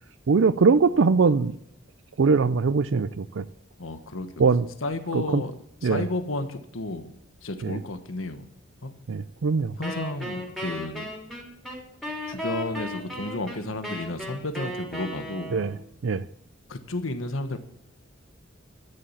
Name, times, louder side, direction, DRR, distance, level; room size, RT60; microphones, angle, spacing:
voice 1, 0.3-1.5 2.2-3.4 4.4-4.7 5.1-5.4 5.8-6.0 7.6-7.8 9.1-9.7 15.5-15.7 16.0-16.2, right 4 dB, 65° right, 14 dB, 0.5 m, -21 dB
voice 2, 3.8-4.3 4.8-5.5 5.8-8.4 8.8-8.9 9.8-11.0 12.3-15.6 16.7-17.6, left 2 dB, 80° left, 9 dB, 1.3 m, -32 dB
Wind instrument woodwind instrument, 9.8-15.8, equal, ahead, 3.5 m, -35 dB
13.5 x 10.0 x 7.2 m, 0.76 s
head